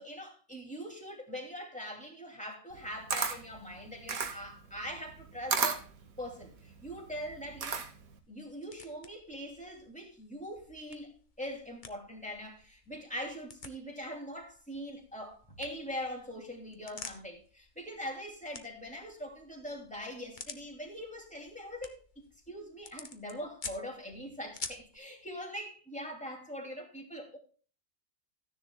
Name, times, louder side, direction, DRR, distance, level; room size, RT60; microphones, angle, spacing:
voice 1, 0.0-5.8 6.2-7.8 8.3-27.4, equal, 5° left, 2.7 m, -42 dB
Camera, 2.7-8.2, right 6 dB, 75° right, 1.7 m, -34 dB
sound 1, 6.8-25.0, left 4 dB, 40° left, 1.0 m, -51 dB
15.5 x 10.0 x 2.3 m
omnidirectional pair, 1.5 m